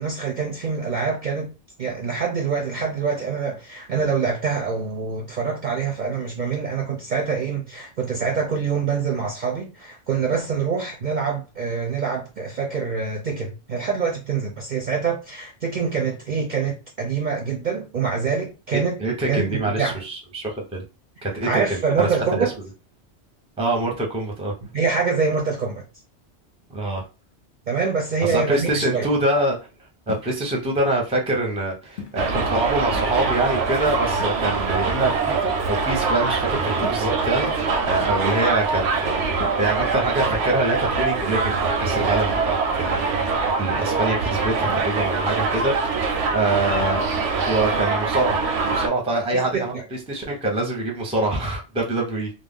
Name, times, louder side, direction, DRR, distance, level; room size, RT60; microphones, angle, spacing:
voice 1, 0.0-19.0 19.3-20.0 21.4-22.5 24.7-25.8 27.7-29.1 49.3-49.8, right 5 dB, 55° right, 0.5 m, -25 dB
voice 2, 18.7-20.8 21.2-22.4 23.6-24.5 26.7-27.0 28.2-29.6 30.1-39.3 39.6-42.9 43.2-47.0 47.5-49.7 50.1-52.3, right 2 dB, 5° right, 0.5 m, -25 dB
sound 1, 28.3-28.7 30.1-30.5 31.9-32.6 34.2-34.9 36.8-37.3 39.4-39.6 42.0-42.5 44.6-45.0, left 6 dB, 55° left, 0.7 m, -39 dB
Subway metro underground, 32.2-48.9, right 4 dB, 85° right, 0.9 m, -23 dB
2.3 x 2.1 x 3.5 m
omnidirectional pair, 1.2 m